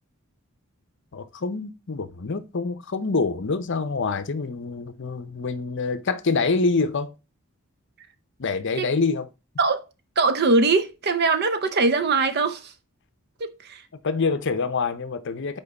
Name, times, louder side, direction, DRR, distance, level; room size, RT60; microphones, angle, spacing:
voice 1, 1.1-7.1 8.4-9.3 14.0-15.6, left 4 dB, 55° left, 0.7 m, -26 dB
voice 2, 10.2-12.7 13.4-13.8, right 3 dB, 45° right, 0.7 m, -22 dB
5.6 x 4.5 x 4.0 m
head